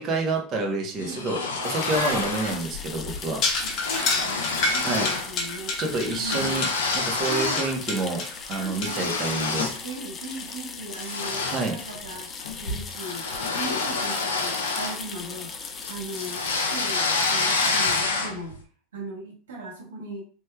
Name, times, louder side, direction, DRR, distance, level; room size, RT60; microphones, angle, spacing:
voice 1, 0.0-3.4 4.8-5.1 5.8-6.7 6.9-9.7 11.5-11.8, right 2 dB, 45° right, 2 dB, 1.1 m, -28 dB
sound 1, 1.0-2.7 3.0-3.2 3.5-5.3 5.6-7.8 8.2-9.9 10.3-10.5 10.9-15.5 15.8-18.5, left 3 dB, 90° left, 0.6 m, -28 dB
sound 2, 1.6-18.0, left 5 dB, 30° left, 0.5 m, -39 dB
voice 2, 1.9-2.3 3.6-5.8 6.1-6.7 7.3-7.6 8.5-9.1 9.8-18.5 18.9-20.2, right 2 dB, 85° right, -2 dB, 1.2 m, -38 dB
sound 3, 2.0-8.9, left 3 dB, 50° left, 0.9 m, -29 dB
3.1 x 3.1 x 2.3 m, 0.41 s
hypercardioid pair, 90°, 0 cm